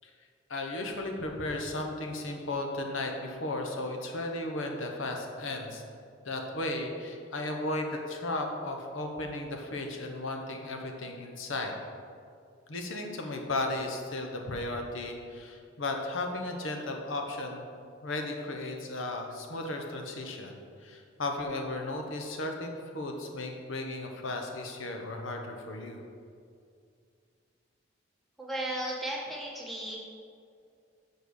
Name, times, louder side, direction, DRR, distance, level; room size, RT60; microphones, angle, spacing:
voice 1, 0.5-5.8 6.2-11.8 12.7-17.7 18.0-20.5 20.8-26.0, left 2 dB, 80° left, 3 dB, 1.0 m, -35 dB
voice 2, 28.4-30.0, right 1 dB, ahead, -4 dB, 1.3 m, -35 dB
7.2 x 4.4 x 6.4 m, 2.3 s
head